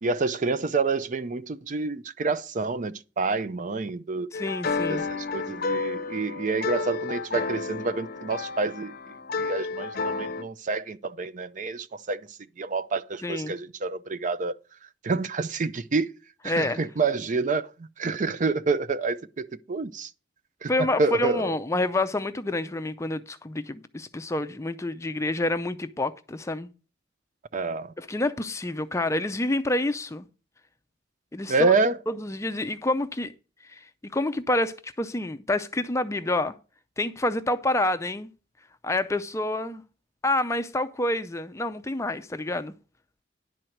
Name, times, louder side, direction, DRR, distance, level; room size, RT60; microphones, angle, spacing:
voice 1, 0.0-4.3 4.9-8.9 9.4-12.2 12.6-14.6 15.0-16.1 16.4-20.1 20.6-20.7 21.0-21.5 27.5-27.9 31.5-32.0, right 3 dB, 40° right, 0.5 m, -28 dB
sound 1, 4.3-10.4, left 4 dB, 50° left, 0.7 m, -31 dB
voice 2, 4.3-5.0 13.2-13.6 16.5-16.8 20.7-26.7 28.0-30.3 31.3-31.7 32.1-33.3 33.7-36.5 37.0-38.3 38.8-39.8 40.2-42.7, left 1 dB, 15° left, 0.4 m, -28 dB
11.0 x 4.5 x 7.8 m
head